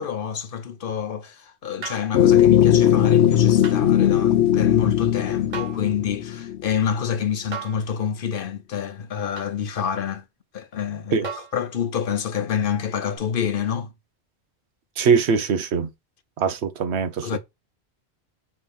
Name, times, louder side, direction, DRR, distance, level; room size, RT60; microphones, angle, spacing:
voice 1, 0.0-10.2 10.5-13.9 17.2-17.4, left 8 dB, 55° left, 1.0 m, -28 dB
sound 1, 1.8-2.1 3.6-3.8 5.5-5.9 7.5-7.9 9.4-9.6 11.2-11.6 13.1-13.2, right 6 dB, 45° right, 1.2 m, -35 dB
sound 2, 2.1-6.8, left 11 dB, 85° left, 0.9 m, -18 dB
voice 2, 15.0-15.9 16.4-17.4, right 6 dB, 85° right, 1.1 m, -22 dB
5.9 x 3.0 x 5.3 m
omnidirectional pair, 1.1 m